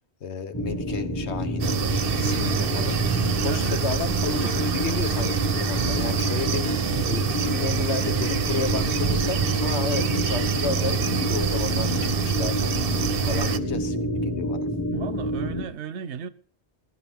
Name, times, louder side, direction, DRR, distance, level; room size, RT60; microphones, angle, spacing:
voice 1, 0.2-1.7 2.2-3.0 3.4-6.7 7.1-12.7 13.2-14.7, left 5 dB, 80° left, 1.3 m, -32 dB
sound 1, 0.5-15.7, equal, 15° left, 1.7 m, -29 dB
sound 2, 1.6-13.6, right 7 dB, 60° right, 0.9 m, -26 dB
voice 2, 2.2-2.7 3.4-3.8 9.9-10.1 14.9-16.3, right 7 dB, 85° right, 1.1 m, -35 dB
21.0 x 11.0 x 3.6 m
omnidirectional pair, 1.1 m